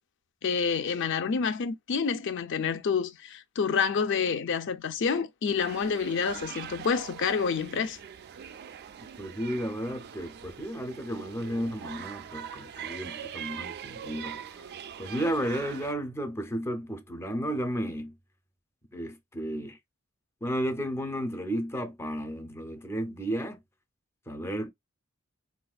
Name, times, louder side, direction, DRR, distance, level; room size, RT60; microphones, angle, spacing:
voice 1, 0.4-8.0, left 6 dB, 60° left, 0.5 m, -28 dB
sound 1, 5.6-15.9, right 8 dB, 50° right, 0.3 m, -42 dB
voice 2, 9.2-14.4 15.0-18.1 18.9-19.8 20.4-23.6 24.3-24.7, equal, 10° left, 0.5 m, -33 dB
4.1 x 2.4 x 2.3 m
head